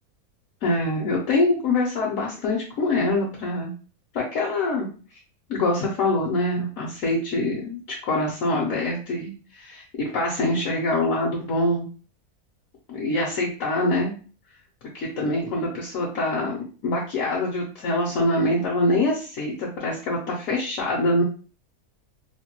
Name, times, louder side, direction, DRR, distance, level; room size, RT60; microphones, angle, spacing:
voice 1, 0.6-3.7 4.1-4.9 5.5-11.8 12.9-14.1 14.9-16.6 16.8-21.2, left 2 dB, 70° left, -3 dB, 1.0 m, -24 dB
2.8 x 2.2 x 2.8 m, 0.37 s
omnidirectional pair, 1.6 m